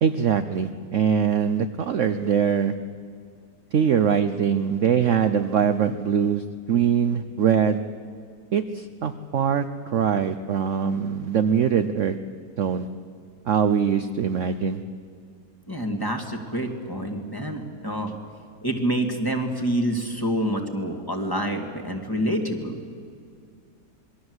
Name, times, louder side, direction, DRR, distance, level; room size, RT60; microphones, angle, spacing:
voice 1, 0.0-2.7 3.7-7.8 8.5-9.6 9.9-12.2 12.6-12.9 13.5-14.8, right 7 dB, 55° right, 9 dB, 1.0 m, -22 dB
voice 2, 15.7-18.2 18.6-22.8, right 1 dB, 10° left, 3 dB, 2.3 m, -27 dB
27.0 x 22.0 x 8.0 m, 2.2 s
omnidirectional pair, 1.8 m